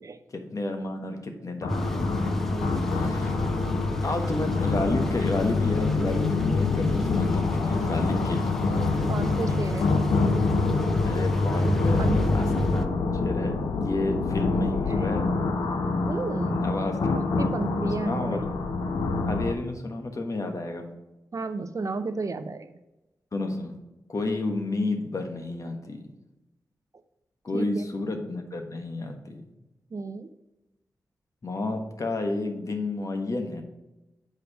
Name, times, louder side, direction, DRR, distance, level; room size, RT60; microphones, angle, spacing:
voice 1, 0.3-1.7 2.8-3.3 4.0-8.7 11.0-12.9 13.2-15.3 16.5-17.2 18.0-18.4 19.3-20.9 23.3-23.7 24.1-26.1 27.4-29.5 31.4-33.6, left 2 dB, 55° left, 4 dB, 1.3 m, -31 dB
sound 1, 1.6-19.5, left 3 dB, 90° left, 0.7 m, -27 dB
sound 2, 1.7-12.9, left 1 dB, 5° left, 0.8 m, -30 dB
voice 2, 2.5-3.2 4.9-5.0 9.1-9.9 10.3-10.7 12.0-12.3 14.4-14.5 14.9-15.1 16.1-16.6 17.1-18.4 21.3-22.7 27.5-27.9 29.9-30.3, right 3 dB, 50° right, 11 dB, 0.6 m, -33 dB
6.7 x 4.8 x 4.8 m, 0.99 s
cardioid pair, 50°, 7 cm